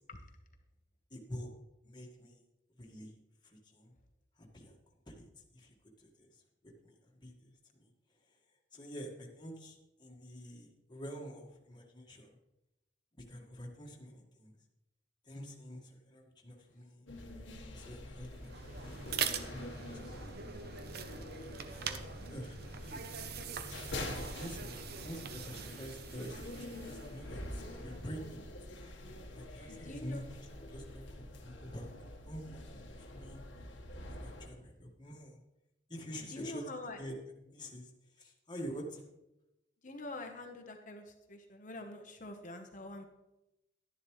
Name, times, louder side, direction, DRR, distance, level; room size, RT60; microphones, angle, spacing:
voice 1, 1.1-1.5 1.8-2.4 2.8-3.1 3.4-3.9 4.4-4.8 5.1-5.3 5.5-6.3 6.6-6.9 7.2-7.9 8.7-12.4 13.3-14.5 15.3-17.1 17.6-20.2 21.7-22.0 22.3-23.1 24.0-28.4 29.3-31.9 32.2-33.4 34.0-35.4 35.9-36.6 36.9-37.1 37.4-37.9 38.2-39.0, equal, 25° left, -1 dB, 1.8 m, -47 dB
sound 1, 17.1-34.5, left 1 dB, 75° left, 1.4 m, -46 dB
sound 2, 18.3-28.2, right 6 dB, 55° right, 0.7 m, -43 dB
voice 2, 29.7-30.2 36.3-37.0 39.8-43.0, left 2 dB, 45° left, 4 dB, 1.1 m, -45 dB
11.5 x 10.5 x 3.2 m, 0.92 s
head